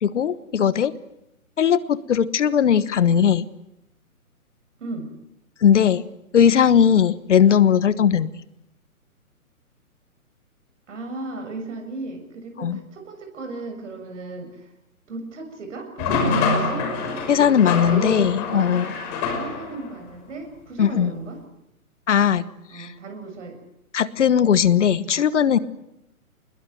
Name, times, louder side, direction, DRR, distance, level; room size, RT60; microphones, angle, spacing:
voice 1, 0.0-0.9 1.6-3.5 5.6-6.0 6.3-8.3 12.6-12.8 17.3-18.9 20.8-21.1 22.1-22.4 22.7-22.9 23.9-25.6, left 8 dB, 55° left, 17 dB, 1.3 m, -18 dB
voice 2, 10.9-14.6 15.1-16.9 17.4-18.7 19.4-21.4 22.7-23.6, right 3 dB, 55° right, 5 dB, 7.0 m, -35 dB
sound 1, 16.0-19.9, left 4 dB, 30° left, 5.7 m, -26 dB
26.0 x 21.5 x 7.9 m, 0.87 s
figure-of-eight pair, 140°, 44 cm